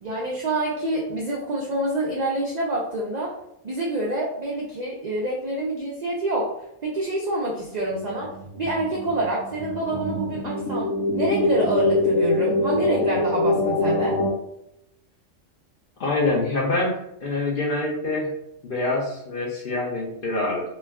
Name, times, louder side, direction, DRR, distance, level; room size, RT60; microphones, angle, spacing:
voice 1, 0.0-3.3 3.6-6.5 6.8-8.3 8.6-14.2, right 1 dB, 75° right, -3 dB, 0.3 m, -27 dB
sound 1, 7.9-14.3, left 2 dB, 80° left, 0.9 m, -24 dB
voice 2, 16.0-18.3 18.6-20.7, left 2 dB, 60° left, -1 dB, 0.6 m, -25 dB
2.3 x 2.2 x 3.4 m, 0.81 s
omnidirectional pair, 1.3 m